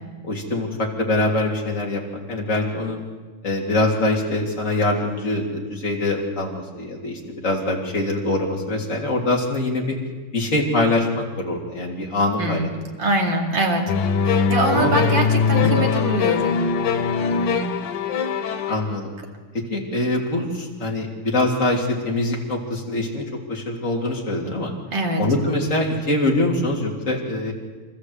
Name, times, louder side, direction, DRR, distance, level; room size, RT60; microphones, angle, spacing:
voice 1, 0.2-2.0 2.3-3.0 3.4-9.9 10.3-12.7 14.7-14.9 15.6-15.7 18.7-19.1 19.5-24.7 25.2-27.5, left 2 dB, 25° left, -1 dB, 3.1 m, -23 dB
voice 2, 12.4-13.8 14.2-16.6 17.3-17.7 24.9-25.3, right 2 dB, 35° right, 1 dB, 2.7 m, -24 dB
sound 1, 13.9-18.8, left 6 dB, 90° left, 3.3 m, -21 dB
26.5 x 14.0 x 8.1 m, 1.4 s
omnidirectional pair, 3.9 m